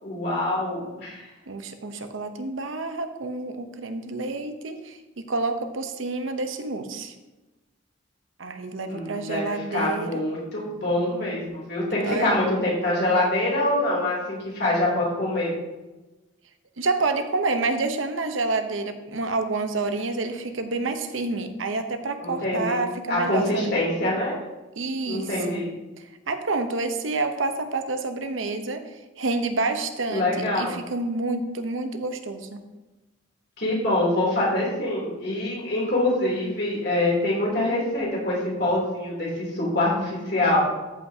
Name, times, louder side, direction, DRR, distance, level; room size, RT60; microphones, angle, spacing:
voice 1, 0.0-1.2 8.8-15.5 22.2-22.8 23.1-24.4 25.1-25.7 30.1-30.8 33.6-40.6, left 1 dB, 55° left, -5 dB, 3.0 m, -25 dB
voice 2, 1.5-7.1 8.4-10.2 12.0-12.3 16.8-23.7 24.8-25.6 26.0-32.6, right 3 dB, 85° right, 7 dB, 0.8 m, -28 dB
13.5 x 5.6 x 2.8 m, 1.1 s
head